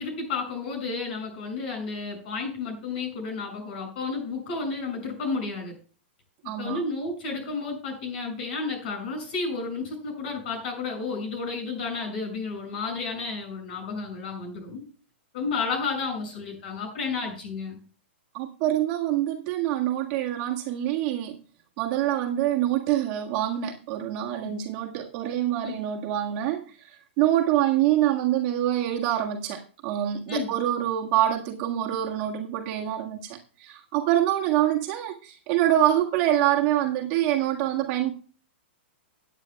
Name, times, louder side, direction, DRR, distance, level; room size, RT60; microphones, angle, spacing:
voice 1, 0.0-5.7 6.6-14.8 15.3-17.8 24.4-24.5 25.6-25.8 30.3-30.5, left 4 dB, 55° left, 6.5 m, -32 dB
voice 2, 6.4-6.8 18.3-21.4 21.8-38.1, right 12 dB, 35° right, 1.6 m, -25 dB
18.5 x 9.1 x 2.3 m
hypercardioid pair, 155°, 6 cm